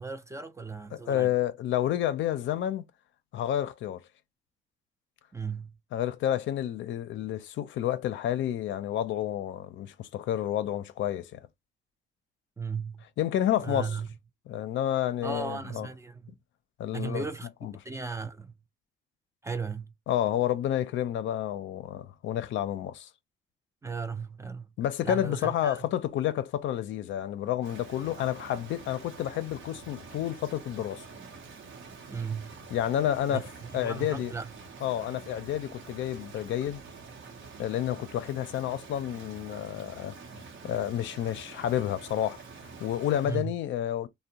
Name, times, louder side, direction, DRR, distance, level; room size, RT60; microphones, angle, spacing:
voice 1, 0.0-1.3 5.3-5.8 12.6-13.0 13.6-14.1 15.2-16.3 16.9-17.5 17.8-18.5 19.4-19.9 23.8-24.7 25.0-25.9 32.1-32.5 33.3-34.5 43.2-43.5, right 5 dB, 15° right, 0.3 m, -36 dB
voice 2, 0.9-2.8 3.3-4.0 5.9-11.4 13.2-14.0 14.5-15.9 16.8-17.2 17.6-17.7 20.1-23.1 24.8-31.1 32.7-34.3 34.8-36.8 37.6-40.2 40.6-42.4 42.8-44.1, left 11 dB, 70° left, 0.4 m, -30 dB
Rain, 27.6-43.5, right 4 dB, 70° right, 0.8 m, -47 dB
2.5 x 2.1 x 2.8 m
cardioid pair, 90°, 20 cm